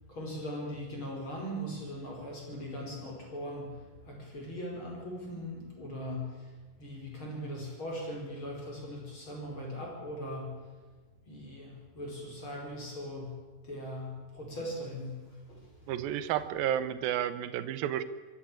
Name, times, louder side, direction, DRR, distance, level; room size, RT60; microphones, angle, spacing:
voice 1, 0.1-6.4 6.8-10.6 11.3-13.4 13.6-15.2 15.5-15.6, equal, 35° left, -1 dB, 5.8 m, -39 dB
voice 2, 15.9-18.0, right 10 dB, 90° right, 13 dB, 2.7 m, -31 dB
24.5 x 12.5 x 8.9 m, 1.3 s
omnidirectional pair, 4.1 m